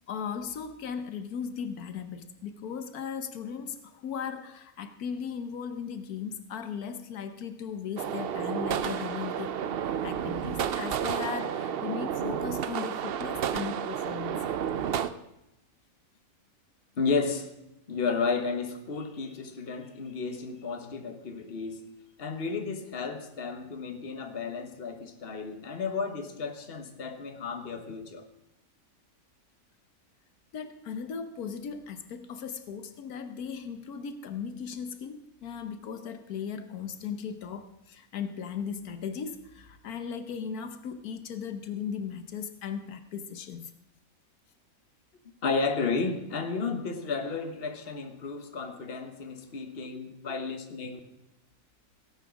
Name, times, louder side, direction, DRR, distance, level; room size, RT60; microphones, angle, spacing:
voice 1, 0.1-9.6 9.8-14.4 30.5-43.7, left 7 dB, 85° left, 1.4 m, -37 dB
sound 1, 8.0-15.1, right 8 dB, 60° right, 0.6 m, -31 dB
voice 2, 17.0-17.5 17.9-21.9 22.2-28.2 45.4-51.0, left 4 dB, 40° left, 1.4 m, -32 dB
17.0 x 8.3 x 6.2 m
omnidirectional pair, 1.6 m